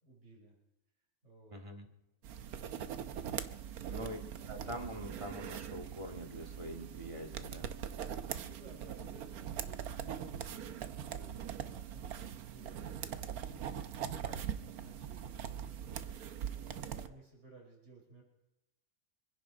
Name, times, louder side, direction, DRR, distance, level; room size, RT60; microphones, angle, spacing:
voice 1, 0.0-0.6 1.2-1.6 3.8-4.0 8.3-18.2, right 2 dB, 50° right, -1 dB, 5.3 m, -58 dB
voice 2, 1.5-1.9 3.9-4.2 4.5-7.7, equal, 20° right, 2 dB, 2.0 m, -44 dB
sound 1, 2.2-17.1, right 9 dB, 80° right, 1.3 m, -42 dB
25.0 x 10.5 x 5.0 m, 0.94 s
omnidirectional pair, 1.6 m